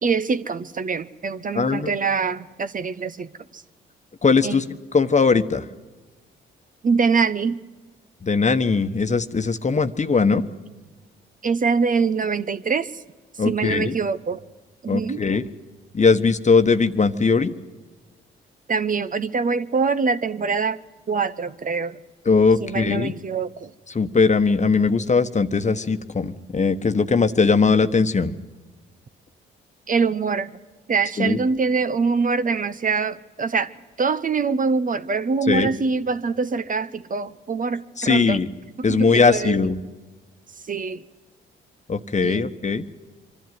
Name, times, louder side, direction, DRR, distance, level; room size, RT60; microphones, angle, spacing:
voice 1, 0.0-3.6 4.4-4.6 6.8-7.6 11.4-13.0 13.3-14.4 14.8-15.2 18.7-20.8 21.1-22.0 22.6-23.7 29.9-30.5 30.9-33.7 34.0-38.4 38.8-39.6 40.6-41.1 42.2-42.4, right 5 dB, 40° right, 0.8 m, -24 dB
voice 2, 1.5-1.9 4.2-4.6 4.9-5.6 8.2-10.4 13.4-14.0 14.9-15.4 15.9-17.5 22.3-23.1 23.9-28.3 31.2-31.4 35.5-35.7 38.0-38.5 38.8-39.8 41.9-42.8, left 4 dB, 35° left, 1.2 m, -19 dB
24.0 x 12.0 x 9.3 m
supercardioid pair, 55°, 21 cm